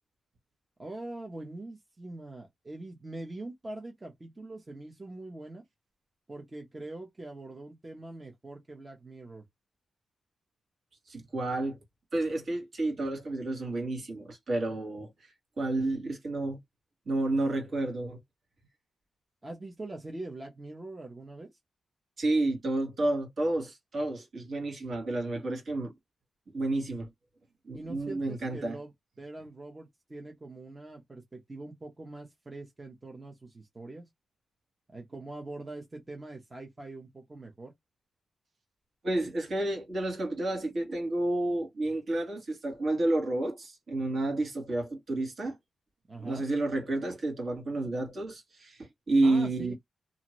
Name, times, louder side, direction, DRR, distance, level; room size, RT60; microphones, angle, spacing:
voice 1, 0.8-5.6 6.3-9.4 19.4-21.5 27.7-28.9 29.2-34.1 34.9-37.7 46.1-46.4 49.2-49.7, right 2 dB, 20° right, 0.7 m, -43 dB
voice 2, 11.1-11.8 12.1-16.6 17.0-18.2 22.2-25.9 26.5-27.1 27.6-28.8 39.0-45.6 46.2-49.7, right 2 dB, 50° right, 1.5 m, -30 dB
2.8 x 2.5 x 3.0 m
wide cardioid pair, 155°, 0 cm